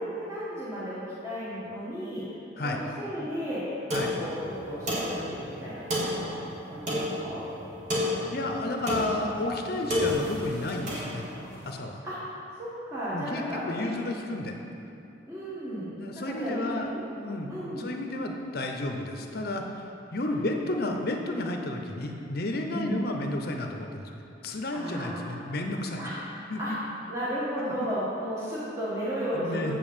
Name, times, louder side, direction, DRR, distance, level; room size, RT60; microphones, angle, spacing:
voice 1, 0.0-2.2 2.6-3.7 4.1-6.4 6.7-7.4 12.0-13.9 15.3-17.0 17.5-17.9 20.3-20.5 22.7-23.0 24.7-25.3 26.0-26.1 26.6-26.7 27.1-29.8, equal, 15° right, -10 dB, 1.5 m, -34 dB
sound 1, 3.9-11.7, left 1 dB, 40° right, 1.6 m, -31 dB
voice 2, 8.3-11.2 11.7-12.0 13.1-14.5 16.0-16.9 17.1-24.1 24.4-26.0 26.5-26.8 27.6-27.7 29.3-29.8, left 1 dB, 55° left, 3 dB, 0.7 m, -32 dB
7.4 x 5.3 x 7.3 m, 2.8 s
head